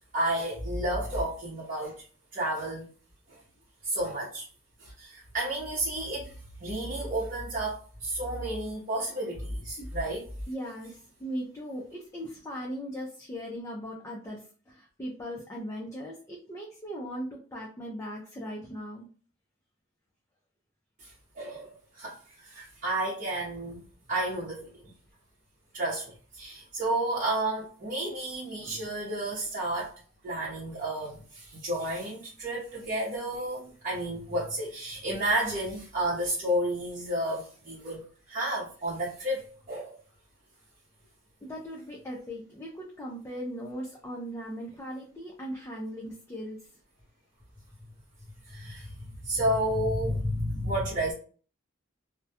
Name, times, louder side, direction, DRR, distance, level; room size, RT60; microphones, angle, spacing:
voice 1, 0.1-2.0 2.3-2.9 3.3-3.4 3.8-4.4 4.8-10.3 21.0-24.9 25.7-30.0 30.2-40.0 48.4-51.1, right 1 dB, 45° right, 0.8 m, -31 dB
voice 2, 10.5-19.1 28.6-28.8 41.4-46.7, equal, 15° left, 0.4 m, -39 dB
2.2 x 2.1 x 2.7 m
head